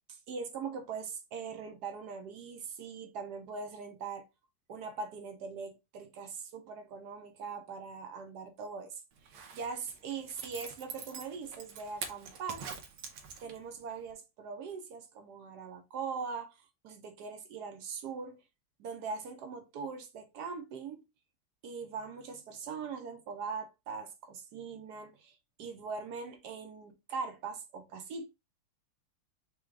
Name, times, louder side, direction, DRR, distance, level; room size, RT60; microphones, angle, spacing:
voice 1, 0.1-4.2 4.7-12.6 13.4-16.6 16.8-18.4 18.8-21.0 21.6-28.3, right 5 dB, 70° right, 1.0 m, -41 dB
Zipper (clothing), 9.2-13.8 14.1-14.2, right 6 dB, 85° right, 1.6 m, -45 dB
4.9 x 2.2 x 4.5 m
omnidirectional pair, 2.3 m